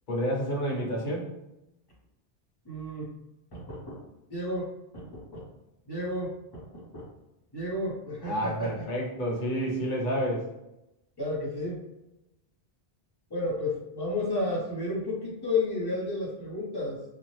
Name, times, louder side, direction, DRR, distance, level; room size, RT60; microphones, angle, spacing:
voice 1, 0.1-1.3 8.2-10.4, equal, 50° left, -3 dB, 0.9 m, -29 dB
voice 2, 2.6-3.1 3.5-4.0 4.3-4.7 4.9-5.5 5.9-7.1 7.5-8.8 11.2-11.8 13.3-17.0, left 2 dB, 25° left, -6 dB, 0.9 m, -32 dB
2.8 x 2.4 x 3.1 m, 0.92 s
omnidirectional pair, 1.1 m